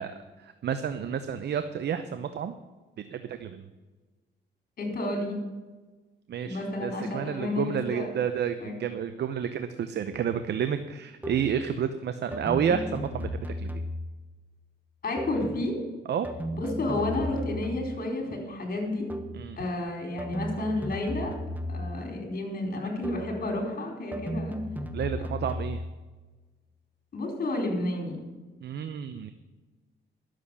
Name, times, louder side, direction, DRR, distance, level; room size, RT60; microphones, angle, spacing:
voice 1, 0.0-2.5 3.1-3.7 6.3-13.8 16.1-16.3 19.3-19.6 24.9-25.8 28.6-29.3, right 8 dB, 60° right, 9 dB, 0.8 m, -30 dB
voice 2, 4.8-5.4 6.4-8.1 8.6-8.7 15.0-15.8 16.5-19.1 19.6-21.3 21.7-24.5 27.1-28.2, left 2 dB, 45° left, 2 dB, 4.4 m, -31 dB
sound 1, 10.1-10.3 11.2-11.6 12.3-14.2 15.2-15.6 16.2-18.0 19.1-19.5 20.2-22.1 23.0-23.4 24.1-25.9, equal, 10° right, 1.0 m, -35 dB
11.5 x 7.7 x 7.0 m, 1.2 s
cardioid pair, 90°, 20 cm